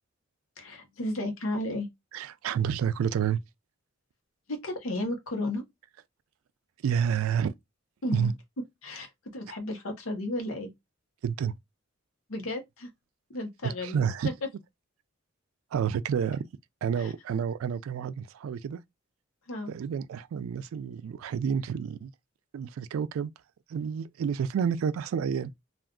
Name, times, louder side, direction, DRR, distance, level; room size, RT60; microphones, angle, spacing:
voice 1, 0.6-1.9 4.5-5.6 8.0-8.3 8.8-10.7 12.3-12.9 13.3-14.1 17.0-17.1 19.5-19.7, left 1 dB, 80° left, 0.8 m, -33 dB
voice 2, 2.1-3.4 6.8-7.5 8.1-8.3 11.2-11.5 13.6-14.3 15.7-16.4 16.8-18.8 19.7-22.1 22.5-23.3 23.7-25.5, right 7 dB, 80° right, 0.3 m, -29 dB
2.4 x 2.3 x 3.6 m
head